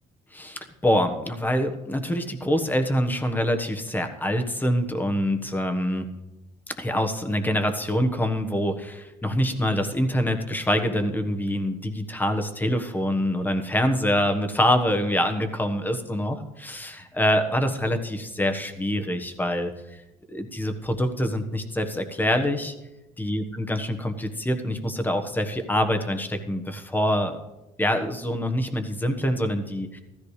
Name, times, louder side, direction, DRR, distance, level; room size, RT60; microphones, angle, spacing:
voice 1, 0.3-6.1 6.7-20.0 20.3-22.7 23.2-27.4 27.8-30.0, equal, 10° left, 6 dB, 1.3 m, -25 dB
15.0 x 14.0 x 3.3 m, 0.98 s
cardioid pair, 110°, 17 cm